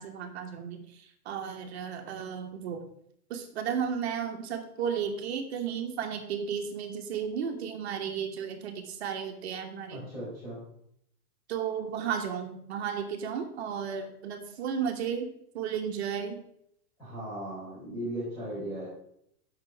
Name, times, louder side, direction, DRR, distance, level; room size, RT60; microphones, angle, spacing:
voice 1, 0.0-2.8 3.3-10.0 11.5-15.3 15.5-16.4, right 7 dB, 45° right, 4 dB, 1.4 m, -34 dB
voice 2, 9.9-10.6 17.0-18.9, right 1 dB, 10° left, -12 dB, 4.3 m, -37 dB
15.5 x 6.2 x 3.5 m, 0.72 s
hypercardioid pair, 170°, 47 cm